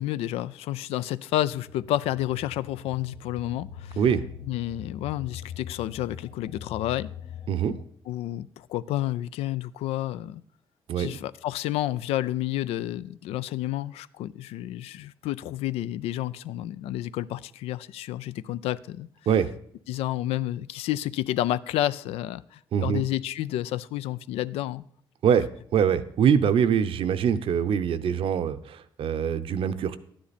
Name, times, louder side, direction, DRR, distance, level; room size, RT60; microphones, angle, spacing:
voice 1, 0.0-4.0 4.4-7.1 8.1-10.4 11.0-19.1 19.9-24.8, left 13 dB, 90° left, 17 dB, 0.4 m, -30 dB
sound 1, 1.3-7.8, left 8 dB, 65° left, 0.8 m, -42 dB
voice 2, 7.5-7.8 10.9-11.2 19.3-19.5 22.7-23.0 25.2-30.0, right 8 dB, 65° right, 11 dB, 0.7 m, -24 dB
11.5 x 10.0 x 4.2 m, 0.62 s
cardioid pair, 90°, 10 cm